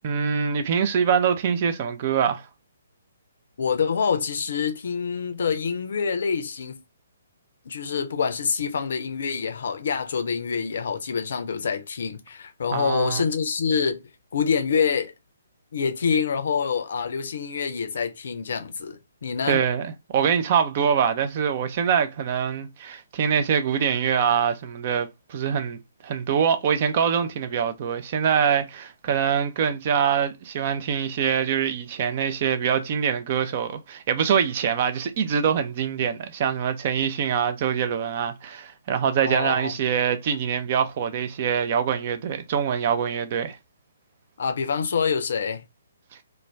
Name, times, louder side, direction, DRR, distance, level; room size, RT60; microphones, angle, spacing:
voice 1, 0.0-2.5 12.7-13.2 19.5-25.8 26.0-43.6, right 7 dB, 40° right, 0.4 m, -24 dB
voice 2, 3.6-6.8 7.7-14.0 14.3-15.1 15.7-19.6 39.2-39.7 44.4-45.6, left 6 dB, 55° left, 0.5 m, -26 dB
2.3 x 2.2 x 3.1 m
figure-of-eight pair, 130°, 0 cm